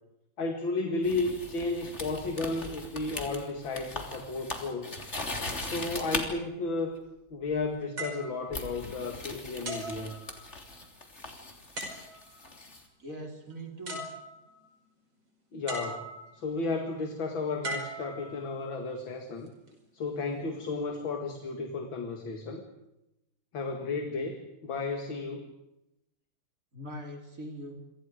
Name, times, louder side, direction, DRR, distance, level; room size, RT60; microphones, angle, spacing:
voice 1, 0.4-4.9 5.7-7.0 7.3-10.2 15.5-16.1 16.3-19.5 19.9-22.6 23.5-25.5, left 3 dB, 70° left, 4 dB, 2.8 m, -33 dB
sound 1, 1.0-6.2 7.5-7.7 8.5-12.8, left 2 dB, 35° left, 3.5 m, -39 dB
sound 2, 8.0-9.2 9.6-10.8 11.8-12.5 13.5-13.6 13.9-14.7 15.7-16.5 17.6-18.7 19.5-19.7, right 1 dB, 75° right, 6.4 m, -40 dB
voice 2, 13.0-14.0 26.7-27.8, right 1 dB, 40° right, 2 dB, 5.0 m, -41 dB
28.0 x 25.5 x 5.1 m, 0.89 s
omnidirectional pair, 2.2 m